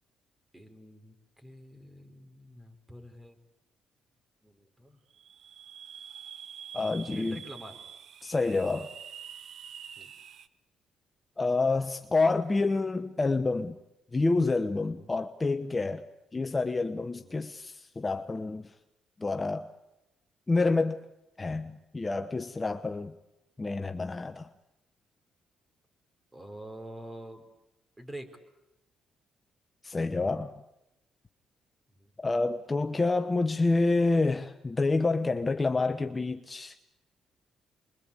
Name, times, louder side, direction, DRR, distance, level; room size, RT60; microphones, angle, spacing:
voice 1, 0.5-3.4 4.4-5.0 7.0-7.8 10.0-10.1 14.8-15.1 17.1-17.4 26.3-27.5 28.0-28.4 31.9-32.1, right 1 dB, 15° right, 4.8 m, -47 dB
sound 1, 5.1-10.5, right 8 dB, 65° right, 1.1 m, -46 dB
voice 2, 6.7-7.4 8.2-8.9 11.4-13.8 14.1-16.1 16.3-18.7 19.2-19.7 20.5-21.0 21.4-23.1 23.6-24.5 29.8-30.5 32.2-36.8, left 3 dB, 25° left, 1.1 m, -28 dB
28.0 x 22.5 x 8.7 m
cardioid pair, 90°, 0 cm